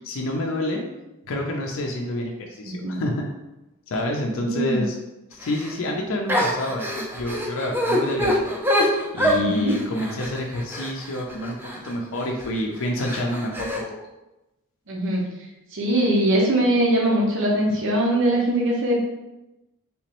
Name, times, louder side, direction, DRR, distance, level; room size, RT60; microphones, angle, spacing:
voice 1, 0.0-0.8 1.3-3.3 3.9-5.0 5.3-14.0, left 1 dB, 60° left, 0 dB, 0.5 m, -28 dB
voice 2, 2.6-3.0 4.4-4.8 9.3-9.7 14.9-15.2 15.7-19.0, right 1 dB, 60° right, -3 dB, 0.7 m, -21 dB
sound 1, 5.4-5.7 6.3-11.9 12.4-12.6 13.0-13.8, equal, 10° right, 0.4 m, -25 dB
3.4 x 2.9 x 2.9 m, 0.97 s
head